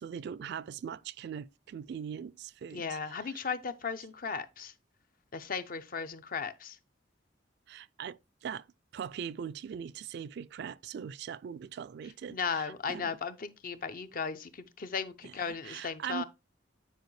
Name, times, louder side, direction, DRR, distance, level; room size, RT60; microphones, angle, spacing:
voice 1, 0.0-3.0 3.3-3.4 7.7-8.6 8.9-13.2 15.2-16.2, right 7 dB, 60° right, 0.3 m, -41 dB
voice 2, 2.7-4.7 5.3-6.8 12.3-16.2, left 5 dB, 50° left, 0.6 m, -36 dB
9.2 x 4.6 x 3.2 m
head